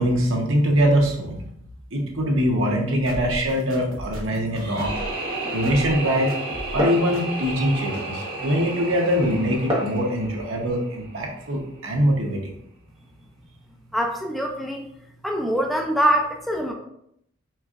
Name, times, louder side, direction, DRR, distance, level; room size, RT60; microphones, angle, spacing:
voice 1, 0.0-1.4 1.9-5.0 5.5-12.5, equal, 65° right, 0 dB, 1.0 m, -23 dB
sound 1, 3.1-5.1 5.6-6.0 6.3-6.8 7.1-7.2, equal, 90° right, 1.1 m, -36 dB
sound 2, 4.5-11.5, right 2 dB, 50° right, 1.8 m, -33 dB
Glass, 4.8-10.0, equal, 25° right, 1.2 m, -32 dB
voice 2, 13.9-14.9 15.2-16.7, equal, ahead, 0 dB, 0.4 m, -23 dB
4.4 x 4.3 x 2.5 m, 0.74 s
head